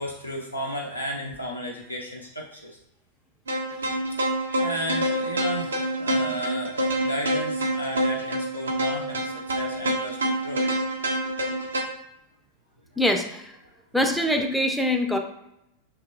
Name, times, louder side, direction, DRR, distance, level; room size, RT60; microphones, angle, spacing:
voice 1, 0.0-2.7 4.6-10.7, equal, 85° left, -1 dB, 0.4 m, -33 dB
sound 1, 3.5-11.8, right 1 dB, 70° right, 0.4 m, -27 dB
voice 2, 13.0-13.5 13.9-15.2, left 1 dB, ahead, 3 dB, 0.4 m, -23 dB
3.3 x 2.9 x 2.3 m, 0.82 s
figure-of-eight pair, 90°, 0 cm